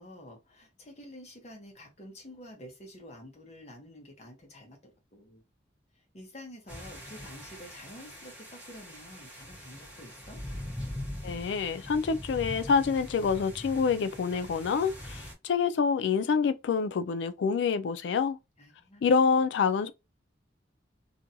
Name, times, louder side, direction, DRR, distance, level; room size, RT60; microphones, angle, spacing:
voice 1, 0.0-5.4 5.9-10.4 18.6-19.0, left 1 dB, 35° left, 0.8 m, -49 dB
sound 1, 6.7-15.3, left 1 dB, 5° right, 0.8 m, -42 dB
voice 2, 11.2-18.4 19.0-19.9, left 5 dB, 65° left, 0.3 m, -27 dB
2.5 x 2.2 x 2.7 m
head